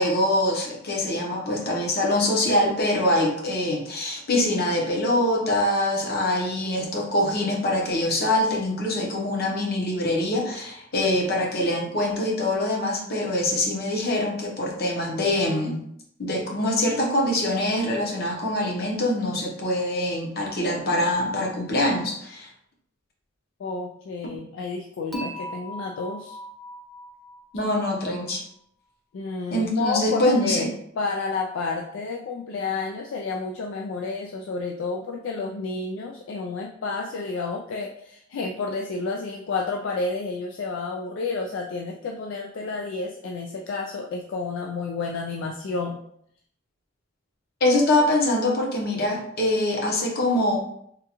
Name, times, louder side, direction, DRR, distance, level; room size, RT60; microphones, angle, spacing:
voice 1, 0.0-15.8 16.2-22.5 27.5-28.4 29.5-30.7 47.6-50.6, left 1 dB, 50° left, -1 dB, 0.8 m, -24 dB
voice 2, 23.6-26.4 29.1-46.0, left 4 dB, 65° left, 1 dB, 0.3 m, -30 dB
Dishes pots and pans / Chink clink, 25.1-28.3, equal, ahead, 0.5 m, -40 dB
3.6 x 2.3 x 2.9 m, 0.70 s
head